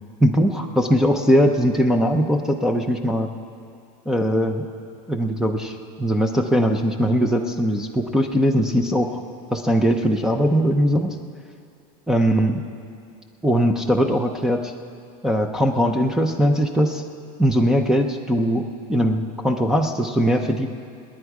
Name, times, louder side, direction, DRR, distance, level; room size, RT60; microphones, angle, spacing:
voice 1, 0.2-3.3 4.1-4.7 5.1-9.2 9.5-11.2 12.1-12.6 13.4-14.7 15.2-17.0 17.4-20.7, equal, 5° right, 0 dB, 0.5 m, -20 dB
27.0 x 10.0 x 4.8 m, 2.5 s
supercardioid pair, 165°, 20 cm